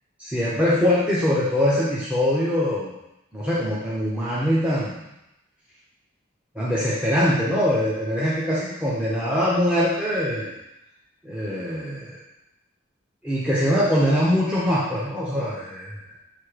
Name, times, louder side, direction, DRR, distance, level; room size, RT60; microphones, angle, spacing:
voice 1, 0.2-2.9 3.3-5.0 6.5-10.5 11.2-12.2 13.2-16.2, equal, 5° right, -8 dB, 0.8 m, -23 dB
7.5 x 2.8 x 4.9 m, 0.91 s
head